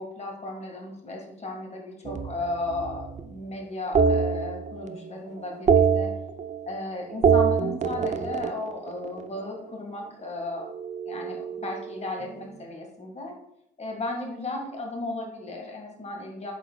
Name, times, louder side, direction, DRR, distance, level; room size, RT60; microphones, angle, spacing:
voice 1, 0.0-6.1 6.7-10.7 11.1-13.4 13.8-16.5, left 2 dB, 35° left, 1 dB, 1.7 m, -35 dB
sound 1, 2.0-3.3 3.9-5.1 5.4-6.8 7.1-9.5 10.6-12.4, right 6 dB, 35° right, 0.5 m, -25 dB
7.9 x 6.4 x 2.3 m, 0.76 s
cardioid pair, 90°, 20 cm